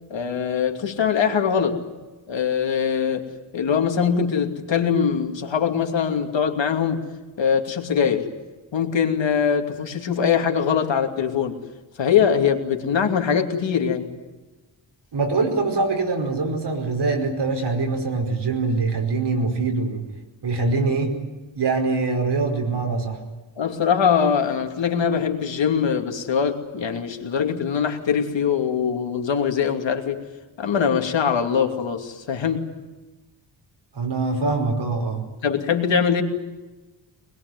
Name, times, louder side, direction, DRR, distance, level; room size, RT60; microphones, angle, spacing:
voice 1, 0.1-1.8 2.3-3.3 3.5-7.0 7.4-8.3 8.7-11.6 12.0-14.1 23.6-30.2 30.6-32.6 35.4-36.2, left 7 dB, 70° left, 4 dB, 2.8 m, -22 dB
voice 2, 15.1-20.0 20.4-21.1 21.6-23.2 33.9-35.3, right 3 dB, 60° right, 3 dB, 5.2 m, -23 dB
24.0 x 21.5 x 9.6 m, 1.2 s
wide cardioid pair, 175°, 45 cm